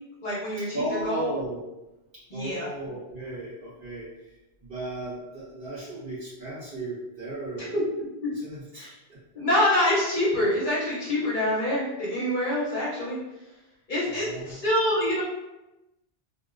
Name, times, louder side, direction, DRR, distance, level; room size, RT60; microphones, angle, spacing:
voice 1, 0.2-1.3 2.3-2.7 7.6-7.8 8.7-8.9 9.3-13.2 13.9-15.2, left 1 dB, 50° left, -6 dB, 0.8 m, -26 dB
voice 2, 0.7-1.6 2.1-4.3 4.6-7.7 8.3-9.2 14.1-14.6, right 1 dB, 50° right, -11 dB, 1.7 m, -36 dB
2.8 x 2.6 x 2.4 m, 0.99 s
omnidirectional pair, 1.1 m